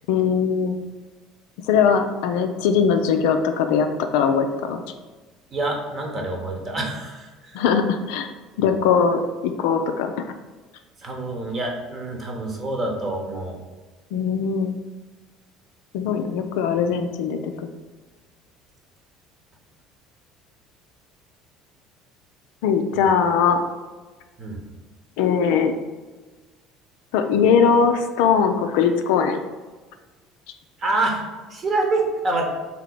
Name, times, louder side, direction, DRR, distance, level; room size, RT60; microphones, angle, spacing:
voice 1, 0.1-0.8 1.7-3.9 4.1-4.8 7.5-8.3 8.6-10.3 14.1-14.7 15.9-17.5 22.6-23.6 25.2-25.7 27.1-29.4, left 6 dB, 65° left, 7 dB, 0.3 m, -20 dB
voice 2, 5.5-7.6 11.0-13.6 22.9-23.1 24.4-24.6 30.8-32.5, right 2 dB, 35° right, 1 dB, 1.0 m, -26 dB
3.8 x 2.9 x 4.7 m, 1.3 s
figure-of-eight pair, 60°, 0 cm